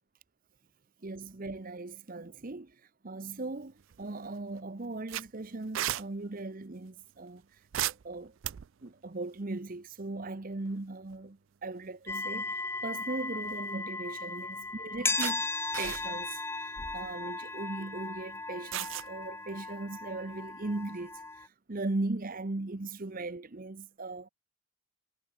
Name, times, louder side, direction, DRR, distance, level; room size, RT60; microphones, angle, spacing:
voice 1, 1.0-2.8 3.0-8.4 8.8-15.5 15.8-24.3, right 2 dB, 40° right, 0.8 m, -38 dB
sound 1, 3.8-4.3 4.6-4.7 5.1-6.0 7.7-8.9 10.5-10.7 11.1-11.2 13.2-13.8 14.4-14.5 15.2-15.3 15.7-16.3 16.8-17.0 18.7-19.1, right 13 dB, 60° right, 0.4 m, -35 dB
sound 2, 12.1-21.5, left 3 dB, 10° left, 1.6 m, -36 dB
head